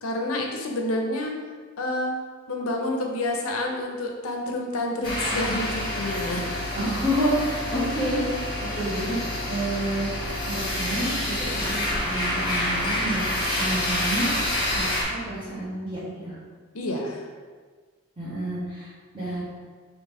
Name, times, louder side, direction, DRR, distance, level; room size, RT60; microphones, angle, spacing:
voice 1, 0.0-1.4 1.8-2.2 2.5-6.5 6.8-6.9 16.7-17.3, left 1 dB, 80° left, 1 dB, 0.7 m, -28 dB
sound 1, 5.0-15.0, left 1 dB, 20° left, 1.2 m, -28 dB
voice 2, 6.7-14.3 14.7-16.4 18.2-19.4, right 1 dB, 25° right, -10 dB, 1.4 m, -29 dB
5.4 x 2.8 x 3.5 m, 1.5 s
head